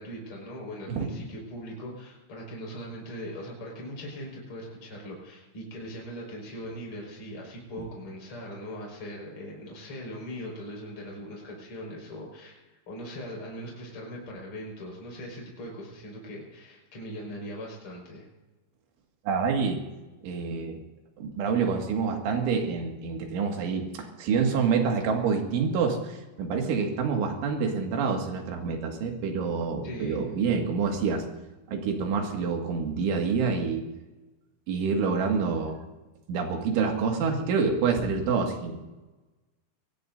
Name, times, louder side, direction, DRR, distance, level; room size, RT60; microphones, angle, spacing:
voice 1, 0.0-18.3 29.8-30.3, equal, 30° left, -2 dB, 5.8 m, -40 dB
voice 2, 19.3-19.8 20.2-20.8 21.2-31.2 31.7-33.8 34.7-35.8 36.3-38.8, right 5 dB, 85° right, 2 dB, 4.5 m, -27 dB
24.5 x 20.0 x 2.7 m, 1.1 s
omnidirectional pair, 5.3 m